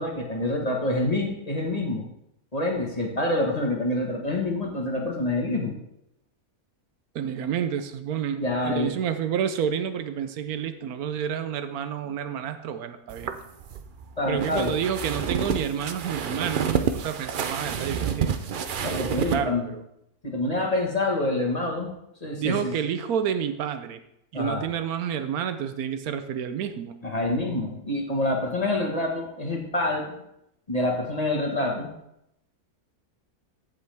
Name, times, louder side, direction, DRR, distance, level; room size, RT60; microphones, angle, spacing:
voice 1, 0.0-2.0 2.5-5.7 8.3-8.9 14.2-14.7 18.8-19.6 20.2-21.9 22.2-22.7 24.3-24.6 27.0-30.1 30.7-31.9, left 2 dB, 25° left, 0 dB, 1.5 m, -26 dB
voice 2, 7.1-13.3 14.3-18.3 19.2-19.8 22.4-24.0 24.3-27.0, right 8 dB, 80° right, 9 dB, 1.1 m, -29 dB
sound 1, 13.1-19.4, right 7 dB, 60° right, 0.5 m, -29 dB
15.5 x 5.4 x 3.5 m, 0.79 s
omnidirectional pair, 1.6 m